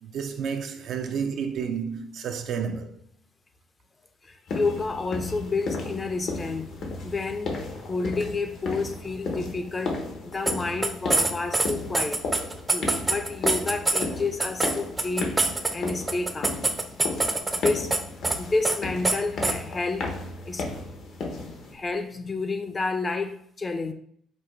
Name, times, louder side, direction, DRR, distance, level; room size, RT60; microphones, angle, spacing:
voice 1, 0.0-3.0, right 6 dB, 65° right, 0.5 m, -31 dB
voice 2, 4.2-10.0 10.3-12.2 12.7-15.3 15.7-16.7 17.5-17.9 18.4-20.2 20.5-20.7 21.4-23.9, left 3 dB, 30° left, 0.6 m, -30 dB
sound 1, 4.5-21.7, left 3 dB, 65° left, 1.0 m, -34 dB
sound 2, 10.5-10.6 10.8-14.1 14.4-18.0 18.2-18.4 18.6-18.8 19.0-19.2 19.4-19.5, right 2 dB, 20° right, 0.6 m, -24 dB
5.1 x 2.3 x 4.5 m
cardioid pair, 90°, 0 cm